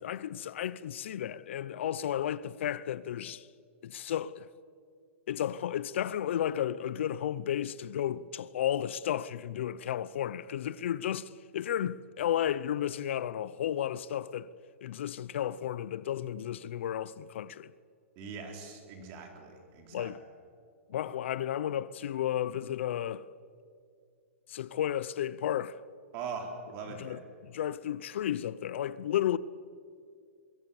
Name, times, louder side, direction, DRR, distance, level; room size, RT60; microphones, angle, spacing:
voice 1, 0.0-3.5 3.8-4.5 5.3-14.5 14.8-17.7 19.9-20.2 20.9-23.3 24.5-25.8 27.0-27.2 27.5-29.4, left 10 dB, 55° left, 0.6 m, -33 dB
voice 2, 18.2-20.1 26.1-27.2, right 5 dB, 30° right, 3.9 m, -41 dB
24.0 x 23.0 x 7.1 m
hypercardioid pair, 165°, 8 cm